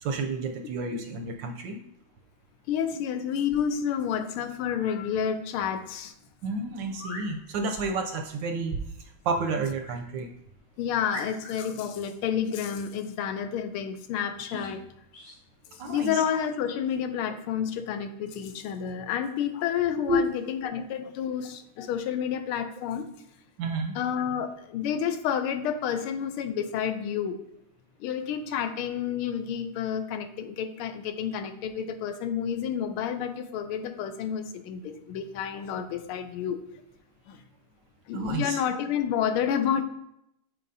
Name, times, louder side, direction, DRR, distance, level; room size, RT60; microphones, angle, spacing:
voice 1, 0.0-1.8 6.4-8.8 9.2-10.3 15.8-16.2 20.1-20.2 23.6-24.0 38.1-38.6, right 2 dB, 75° right, 4 dB, 1.1 m, -30 dB
voice 2, 2.7-6.1 10.8-14.8 15.7-23.0 23.9-27.4 28.0-36.6 37.3-37.4 38.1-39.8, left 8 dB, 90° left, 9 dB, 1.5 m, -30 dB
sound 1, 6.9-7.3 9.8-10.0 10.5-10.6 11.1-11.7 14.4-14.7 15.1-15.4, left 1 dB, 70° left, 3.1 m, -41 dB
7.4 x 4.7 x 2.6 m, 0.80 s
omnidirectional pair, 2.3 m